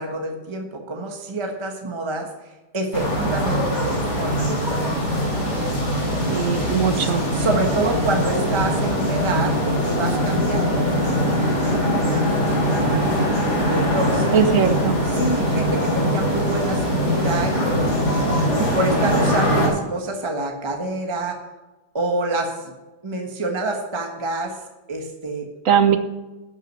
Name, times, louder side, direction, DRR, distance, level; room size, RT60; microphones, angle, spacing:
voice 1, 0.0-2.3 2.7-4.8 6.2-6.5 6.9-10.8 12.7-13.1 13.7-14.4 15.2-18.2 18.6-21.4 21.9-22.7 23.0-24.6 24.9-25.5, right 2 dB, 15° right, 3 dB, 1.3 m, -27 dB
sound 1, 2.9-19.7, equal, 40° left, 4.3 m, -22 dB
voice 2, 6.3-7.2 14.3-15.0 25.6-26.0, right 7 dB, 55° right, 9 dB, 1.0 m, -19 dB
12.5 x 6.5 x 6.9 m, 1.1 s
omnidirectional pair, 2.1 m